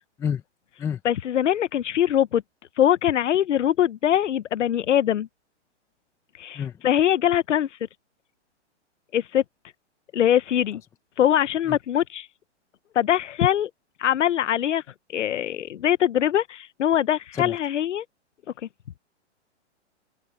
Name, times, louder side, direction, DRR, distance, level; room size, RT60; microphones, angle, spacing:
voice 1, 0.2-0.4 0.8-1.0 6.5-6.8 11.7-11.8 17.3-17.6, left 7 dB, 10° left, 0.8 m, -29 dB
voice 2, 1.0-2.4 2.8-5.3 6.4-7.8 9.1-9.4 10.1-10.8 11.2-12.3 12.9-13.7 14.0-14.8 15.1-18.0, left 10 dB, 85° left, 0.8 m, -22 dB
hypercardioid pair, 155°, 35 cm